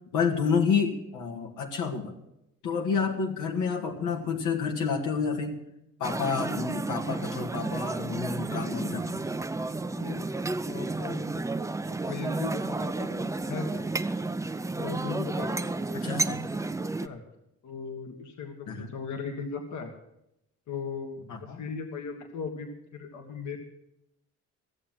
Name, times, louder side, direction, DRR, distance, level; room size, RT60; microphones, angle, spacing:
voice 1, 0.1-2.2 2.6-5.6 6.0-9.2 15.9-16.4 18.7-18.9 21.3-21.6, left 5 dB, 85° left, 2 dB, 1.9 m, -29 dB
sound 1, 6.0-17.1, right 3 dB, 10° right, 0.5 m, -32 dB
voice 2, 9.9-13.9 14.8-17.2 17.6-19.9 20.7-23.6, left 5 dB, 70° left, 3 dB, 1.8 m, -38 dB
15.5 x 7.5 x 7.7 m, 0.85 s
cardioid pair, 90°, 30 cm